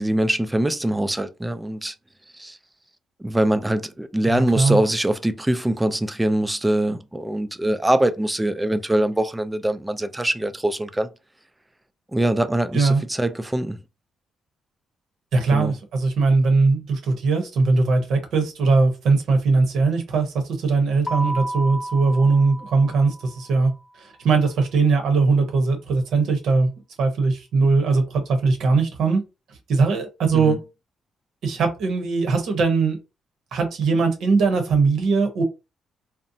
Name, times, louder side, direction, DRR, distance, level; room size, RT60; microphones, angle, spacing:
voice 1, 0.0-1.9 2.4-2.6 3.2-11.1 12.1-13.8 15.5-15.7 30.3-30.6, right 1 dB, 10° right, 0.3 m, -23 dB
voice 2, 4.3-4.8 12.7-13.0 15.3-23.7 24.0-26.7 27.0-29.2 29.7-30.6 31.4-33.0 33.5-35.4, right 4 dB, 70° right, 0.8 m, -20 dB
Keyboard (musical), 21.1-23.6, right 1 dB, 25° left, 0.8 m, -32 dB
2.7 x 2.0 x 2.6 m
cardioid pair, 90°, 0 cm